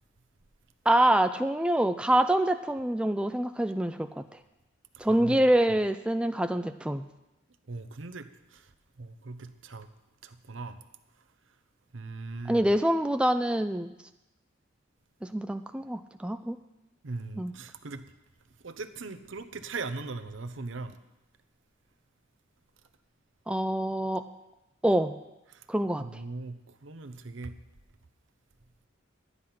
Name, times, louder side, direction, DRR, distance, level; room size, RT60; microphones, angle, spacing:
voice 1, 0.9-4.2 5.0-7.0 12.5-13.9 15.2-16.6 17.4-17.5 23.5-24.2 24.8-25.1 25.7-26.2, right 1 dB, 5° right, 8 dB, 0.3 m, -26 dB
voice 2, 4.9-5.4 7.7-8.7 9.0-9.9 10.2-10.8 11.9-12.7 17.0-18.0 18.6-21.0 25.5-25.6 26.0-27.5, right 3 dB, 70° right, 10 dB, 0.8 m, -39 dB
12.0 x 9.7 x 5.7 m, 0.96 s
head